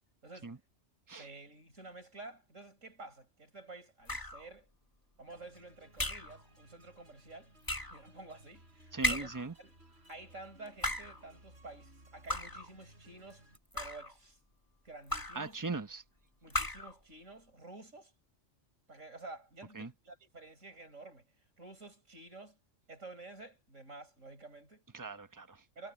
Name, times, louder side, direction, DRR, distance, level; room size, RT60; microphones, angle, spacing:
voice 1, 0.2-0.6 1.1-4.7 5.2-7.5 7.9-9.3 9.6-9.7 10.1-13.5 13.7-14.4 14.8-15.7 16.4-18.1 18.9-21.3 21.6-22.6 22.9-24.8 25.8-25.9, right 2 dB, 85° right, 7.6 m, -51 dB
sound 1, 4.1-4.5 6.0-6.4 7.6-8.0 9.0-9.5 10.7-11.2 12.3-12.7 13.5-14.1 15.1-15.5 16.5-17.0, left 1 dB, 15° left, 1.6 m, -35 dB
sound 2, 5.3-13.6, right 1 dB, 55° right, 7.1 m, -61 dB
voice 2, 8.9-9.5 15.3-16.0 19.7-19.9 24.9-25.6, right 3 dB, 15° right, 1.1 m, -39 dB
omnidirectional pair, 1.3 m